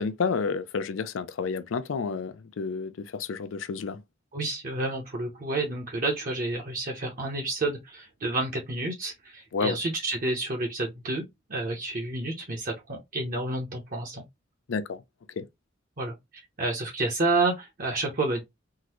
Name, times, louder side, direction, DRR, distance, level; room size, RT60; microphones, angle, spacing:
voice 1, 0.0-4.0 9.5-9.8 14.7-15.0 15.4-15.5, left 5 dB, 80° left, 0.5 m, -30 dB
voice 2, 4.3-11.2 11.5-14.2 16.0-16.1 16.6-18.4, right 2 dB, 45° right, 0.8 m, -29 dB
3.7 x 2.1 x 2.9 m
head